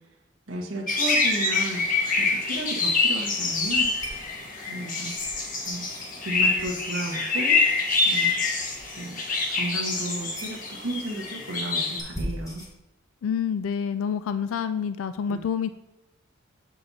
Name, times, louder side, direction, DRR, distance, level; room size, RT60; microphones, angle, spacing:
voice 1, 0.5-1.9 2.1-3.9 4.4-5.2 5.6-5.9 6.2-7.6 8.0-8.5 9.0-9.2 9.5-12.6 15.3-15.4, right 1 dB, 70° right, -1 dB, 1.3 m, -33 dB
sound 1, 0.9-12.0, left 3 dB, 40° left, 1.2 m, -26 dB
sound 2, 1.9-12.7, equal, 15° left, 1.4 m, -43 dB
voice 2, 13.2-15.7, left 7 dB, 85° left, 12 dB, 0.3 m, -27 dB
7.3 x 5.4 x 4.1 m, 0.96 s
head